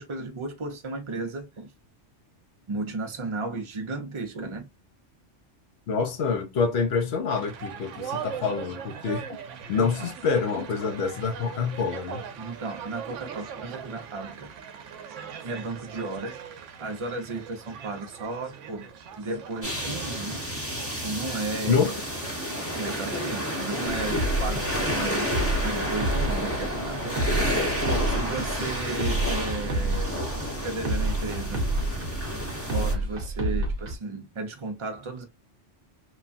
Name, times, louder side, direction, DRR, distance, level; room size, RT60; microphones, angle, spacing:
voice 1, 0.0-1.7 2.7-4.7 9.8-10.1 12.4-14.6 15.4-16.4 16.8-18.8 19.2-20.5 21.0-22.0 22.7-27.5 27.8-30.2 30.6-31.7 32.7-35.2, right 3 dB, 35° right, 0.5 m, -34 dB
voice 2, 5.9-9.3 9.7-12.2 21.7-21.9, left 5 dB, 65° left, 0.8 m, -26 dB
sound 1, 7.3-23.9, right 7 dB, 80° right, 0.9 m, -41 dB
sound 2, 19.6-32.9, equal, 15° left, 0.8 m, -30 dB
sound 3, 23.9-34.0, right 1 dB, 55° right, 0.8 m, -29 dB
3.1 x 2.2 x 2.5 m
omnidirectional pair, 1.2 m